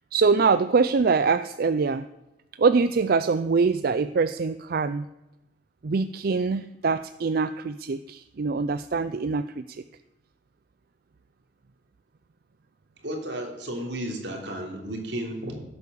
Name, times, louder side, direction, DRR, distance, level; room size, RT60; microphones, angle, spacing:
voice 1, 0.1-2.0 2.6-5.1 5.8-9.8, right 4 dB, 55° right, 12 dB, 0.4 m, -24 dB
voice 2, 13.0-15.6, right 1 dB, 80° right, 2 dB, 3.3 m, -33 dB
16.0 x 8.5 x 6.9 m, 0.96 s
head